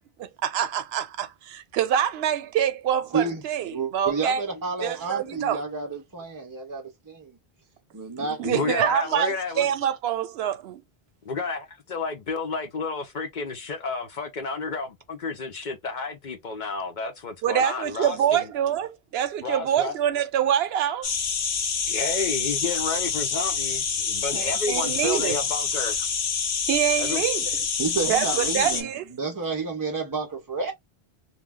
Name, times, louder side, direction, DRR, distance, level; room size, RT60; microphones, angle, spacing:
voice 1, 0.2-4.4 4.8-5.6 8.4-10.8 17.4-21.1 24.3-25.3 26.7-27.5 28.1-29.1, right 10 dB, 80° right, 0.8 m, -25 dB
voice 2, 3.1-7.3 7.9-8.5 27.8-28.9 29.2-30.7, right 4 dB, 30° right, 0.4 m, -30 dB
voice 3, 8.4-9.7 11.3-18.5 19.4-19.9 21.9-26.1 27.0-27.2, left 4 dB, 55° left, 0.7 m, -31 dB
sound 1, 21.0-28.8, left 6 dB, 85° left, 0.9 m, -27 dB
2.3 x 2.2 x 3.4 m
omnidirectional pair, 1.0 m